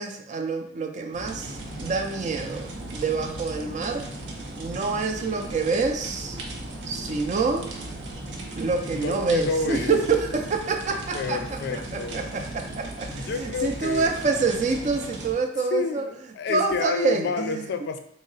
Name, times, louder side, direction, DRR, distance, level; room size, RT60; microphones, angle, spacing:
voice 1, 0.0-4.0 4.6-6.4 6.9-7.7 8.6-11.8 12.1-16.1 16.5-17.6, right 4 dB, 40° right, 5 dB, 0.4 m, -27 dB
sound 1, 1.1-15.3, right 1 dB, 85° right, 0.6 m, -37 dB
voice 2, 8.9-9.9 11.1-12.3 13.1-14.2 15.7-18.0, left 4 dB, 65° left, 7 dB, 0.3 m, -29 dB
3.6 x 2.0 x 3.9 m, 0.67 s
head